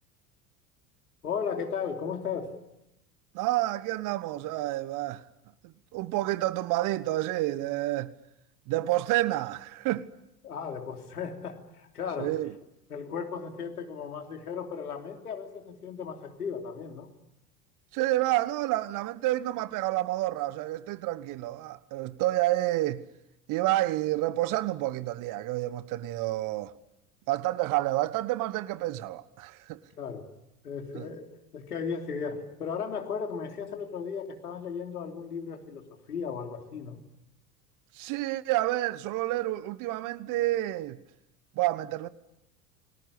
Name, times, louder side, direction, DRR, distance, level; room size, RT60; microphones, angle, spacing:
voice 1, 1.2-2.5 10.4-12.4 12.9-17.1 30.0-30.3 30.6-37.0, left 6 dB, 75° left, 3.4 m, -36 dB
voice 2, 3.3-5.2 5.6-8.1 8.7-10.1 12.2-12.5 17.9-23.0 23.5-26.7 27.3-29.8 30.9-31.1 37.9-41.0 41.5-42.1, right 16 dB, 45° right, 1.3 m, -29 dB
29.0 x 19.5 x 9.9 m
figure-of-eight pair, 75°, 45 cm